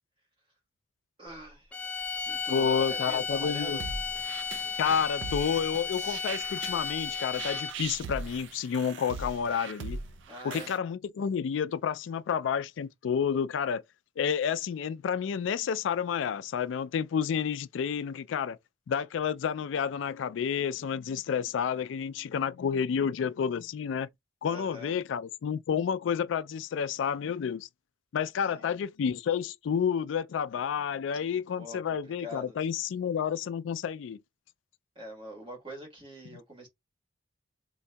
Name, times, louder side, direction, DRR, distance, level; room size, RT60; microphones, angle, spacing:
voice 1, 1.2-3.8 10.3-10.7 24.4-25.0 28.4-28.8 31.5-32.6 34.9-36.7, right 1 dB, 25° right, 1.4 m, -44 dB
sound 1, 1.7-7.9, left 6 dB, 5° left, 0.5 m, -34 dB
voice 2, 2.5-3.8 4.8-10.0 10.4-13.8 14.2-18.6 18.9-24.1 24.4-27.7 28.1-34.2, left 7 dB, 85° left, 0.3 m, -30 dB
sound 2, 3.5-10.8, right 4 dB, 75° right, 0.4 m, -40 dB
3.8 x 2.6 x 2.2 m
head